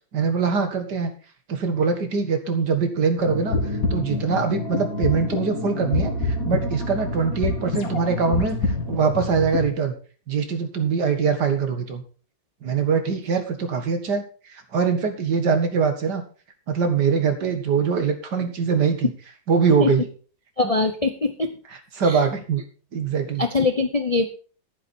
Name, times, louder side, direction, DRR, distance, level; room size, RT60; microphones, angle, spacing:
voice 1, 0.1-1.1 1.5-3.6 3.9-10.0 10.3-12.0 12.6-16.2 16.7-19.1 19.5-20.0 22.0-22.6 22.9-23.4, right 5 dB, 65° right, 7 dB, 2.3 m, -23 dB
sound 1, 3.2-9.7, left 2 dB, 50° left, 2.4 m, -26 dB
voice 2, 20.6-21.5 22.0-22.2 23.4-24.3, left 3 dB, 30° left, 6 dB, 0.6 m, -22 dB
11.5 x 9.6 x 4.3 m, 0.38 s
omnidirectional pair, 2.0 m